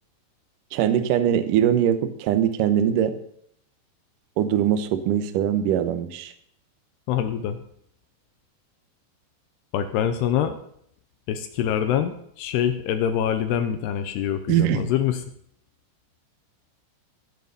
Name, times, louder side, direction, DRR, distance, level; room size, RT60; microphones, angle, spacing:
voice 1, 0.7-3.1 4.4-6.3 14.5-14.9, right 10 dB, 80° right, 10 dB, 1.9 m, -22 dB
voice 2, 7.1-7.6 9.7-10.6 11.3-15.2, left 9 dB, 80° left, 9 dB, 2.6 m, -25 dB
15.0 x 6.8 x 6.8 m, 0.69 s
omnidirectional pair, 5.3 m